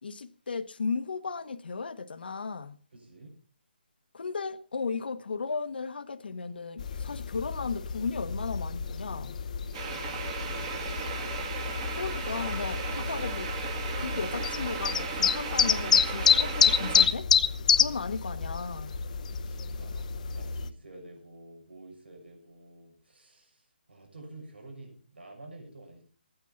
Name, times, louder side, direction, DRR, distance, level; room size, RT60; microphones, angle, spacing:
voice 1, 0.0-2.8 4.1-9.4 11.9-13.5 14.0-17.3 17.7-19.0, left 4 dB, 70° left, 1.2 m, -35 dB
voice 2, 2.9-3.4 9.6-11.1 19.4-26.0, right 2 dB, 85° right, 6.4 m, -50 dB
sound 1, 6.8-20.7, left 7 dB, 45° left, 0.9 m, -29 dB
sound 2, 9.7-17.1, right 6 dB, 30° right, 2.4 m, -36 dB
16.5 x 9.1 x 5.8 m
hypercardioid pair, 160°, 6 cm